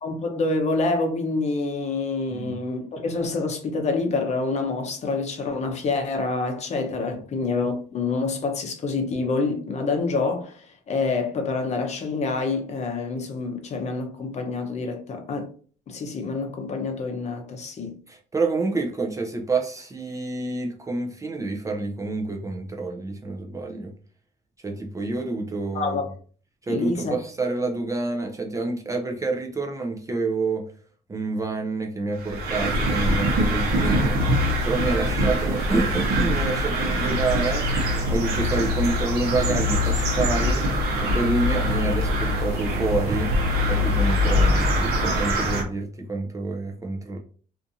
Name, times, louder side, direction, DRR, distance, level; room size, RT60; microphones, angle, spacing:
voice 1, 0.0-15.5 15.9-18.0 25.7-26.1 26.7-27.1, left 3 dB, 40° left, 0.7 m, -27 dB
voice 2, 18.1-23.9 24.6-26.0 26.6-30.7 31.1-34.2 34.6-37.7 38.1-40.7 41.0-43.3 43.7-47.2, right 3 dB, 20° right, 0.4 m, -28 dB
sound 1, 32.2-45.6, equal, 70° right, 0.8 m, -23 dB
2.5 x 2.5 x 2.7 m
cardioid pair, 110°, 17 cm